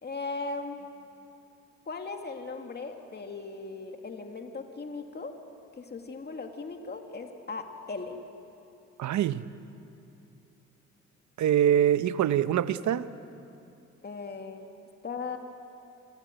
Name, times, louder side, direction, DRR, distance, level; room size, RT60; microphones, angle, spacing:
voice 1, 0.0-1.1 1.9-5.3 5.8-8.2 14.0-14.7 15.0-15.4, left 4 dB, 35° left, 4 dB, 2.3 m, -38 dB
voice 2, 9.0-9.4 11.4-13.0, right 10 dB, 70° right, 13 dB, 1.0 m, -24 dB
26.5 x 22.0 x 9.2 m, 2.7 s
cardioid pair, 90°, 30 cm